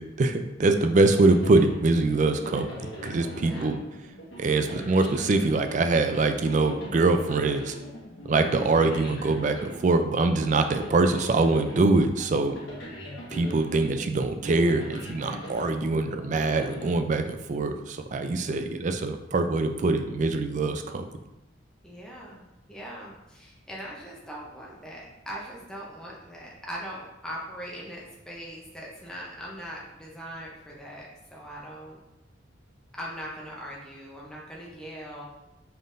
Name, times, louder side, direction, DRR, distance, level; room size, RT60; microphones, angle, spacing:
voice 1, 0.0-3.8 4.4-7.7 8.2-12.5 13.3-21.0, right 3 dB, 40° right, 7 dB, 0.3 m, -24 dB
sound 1, 1.0-17.6, left 1 dB, 75° left, 1.3 m, -41 dB
voice 2, 3.3-3.7 21.8-32.0 32.9-35.2, equal, 5° left, -4 dB, 0.7 m, -40 dB
5.3 x 3.8 x 2.6 m, 0.97 s
head